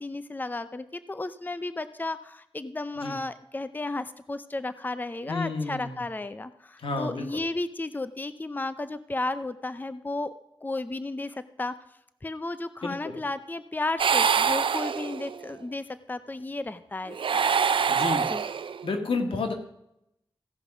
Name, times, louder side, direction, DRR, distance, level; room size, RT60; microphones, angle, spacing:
voice 1, 0.0-10.4 10.6-11.7 12.2-17.2 18.3-18.4, left 2 dB, 20° left, 12 dB, 0.5 m, -33 dB
voice 2, 5.3-6.0 6.8-7.4 12.8-13.2 17.9-18.3 18.8-19.5, left 3 dB, 85° left, 4 dB, 1.7 m, -31 dB
sound 1, 14.0-15.5 17.1-18.9, right 6 dB, 70° right, 0.4 m, -25 dB
15.5 x 5.4 x 6.0 m, 0.80 s
wide cardioid pair, 75°, 9 cm